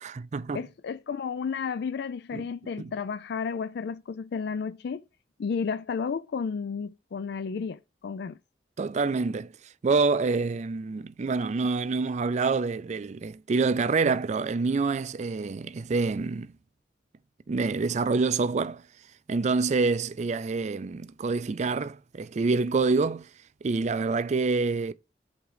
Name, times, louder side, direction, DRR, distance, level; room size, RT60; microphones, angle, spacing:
voice 1, 0.0-0.6 2.3-2.5 2.8-2.9 8.8-9.5 9.8-16.5 17.5-18.8 19.3-23.3 23.6-24.9, right 4 dB, 40° right, 0.4 m, -27 dB
voice 2, 0.5-5.0 5.4-8.4, left 5 dB, 65° left, 0.4 m, -32 dB
8.0 x 3.7 x 4.8 m
head